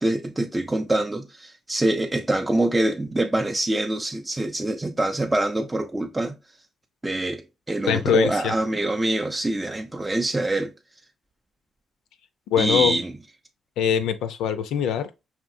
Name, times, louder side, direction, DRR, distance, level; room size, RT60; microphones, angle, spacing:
voice 1, 0.0-6.4 7.0-10.7 12.6-13.1, right 2 dB, 15° right, 0.4 m, -25 dB
voice 2, 7.9-8.5 12.5-13.0 13.8-15.1, left 8 dB, 85° left, 0.5 m, -22 dB
5.0 x 3.1 x 2.6 m
cardioid pair, 90°, 0 cm